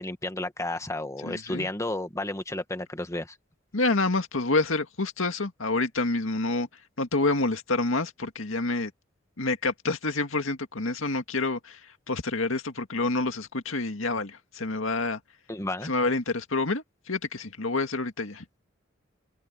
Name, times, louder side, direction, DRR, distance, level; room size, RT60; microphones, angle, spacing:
voice 1, 0.0-3.4 15.5-15.9, left 2 dB, 15° left, 1.6 m, -32 dB
voice 2, 1.2-1.7 3.7-6.7 7.0-8.9 9.4-15.2 15.8-18.4, left 3 dB, 90° left, 2.0 m, -28 dB
head